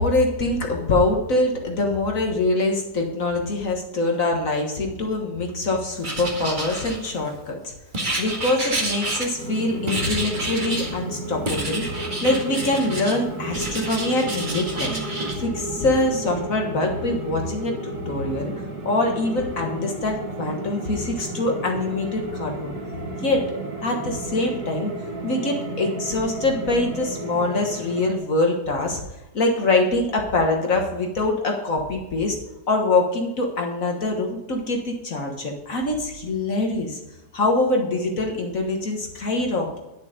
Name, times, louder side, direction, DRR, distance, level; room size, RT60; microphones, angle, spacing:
voice 1, 0.0-7.7 8.2-14.9 15.4-18.5 18.8-22.7 23.2-23.5 23.8-24.9 25.2-29.0 29.3-32.4 32.7-37.0 37.3-39.8, left 2 dB, 55° left, 2 dB, 1.8 m, -24 dB
Writing, 6.0-7.3 7.9-9.6 9.9-10.9 11.5-13.2 13.5-15.4, right 2 dB, 30° right, 1.9 m, -29 dB
sound 1, 9.4-28.2, right 2 dB, 75° right, 2.5 m, -33 dB
11.0 x 6.9 x 5.2 m, 0.99 s
omnidirectional pair, 1.7 m